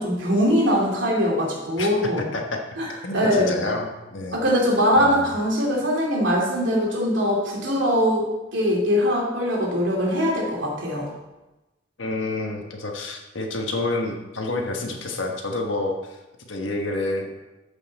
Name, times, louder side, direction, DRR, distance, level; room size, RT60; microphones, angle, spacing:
voice 1, 0.0-2.3 2.8-2.9 3.1-3.7 4.3-8.2 8.5-11.1, equal, 75° right, -3 dB, 2.9 m, -22 dB
voice 2, 3.0-4.4 5.0-5.3 12.0-17.3, left 2 dB, 85° left, 2 dB, 1.4 m, -29 dB
13.5 x 5.6 x 4.2 m, 1.1 s
head